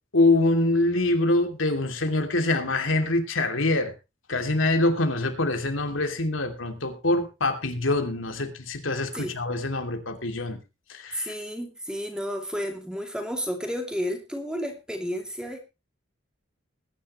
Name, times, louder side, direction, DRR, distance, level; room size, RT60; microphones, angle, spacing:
voice 1, 0.1-3.9 4.3-10.6 10.9-11.3, left 2 dB, 90° left, 2.7 m, -24 dB
voice 2, 11.1-15.6, equal, 5° right, 2.6 m, -32 dB
21.0 x 10.5 x 3.1 m
head